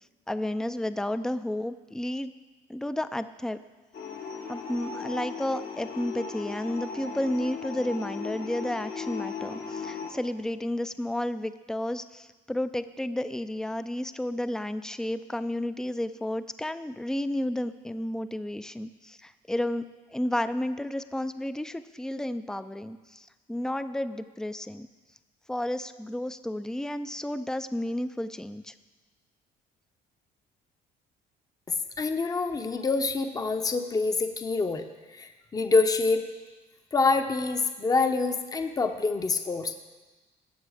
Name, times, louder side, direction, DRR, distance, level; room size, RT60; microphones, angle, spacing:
voice 1, 0.3-2.3 2.7-3.6 4.5-24.9 25.5-28.7, left 1 dB, 5° left, 12 dB, 0.4 m, -32 dB
sound 1, 3.9-10.1, left 5 dB, 60° left, 1.5 m, -37 dB
voice 2, 31.7-36.3 36.9-39.7, left 3 dB, 20° left, 7 dB, 0.8 m, -26 dB
16.5 x 6.9 x 4.9 m, 1.3 s
cardioid pair, 110°, 17 cm